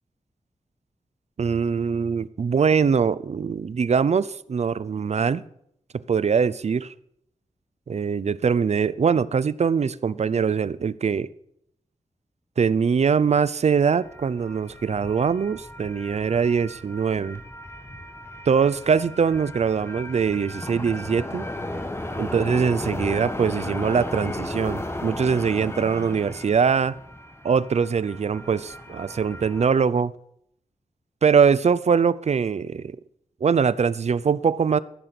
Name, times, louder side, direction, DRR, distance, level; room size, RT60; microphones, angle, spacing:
voice 1, 1.4-5.4 6.1-6.9 7.9-11.3 12.6-17.4 18.5-21.5 22.2-27.0 27.4-30.1 31.2-33.0 33.4-34.8, right 6 dB, 60° right, 0.5 m, -22 dB
sound 1, 13.8-29.7, left 1 dB, 20° left, 1.3 m, -35 dB
15.0 x 6.8 x 5.9 m
wide cardioid pair, 80°, 13 cm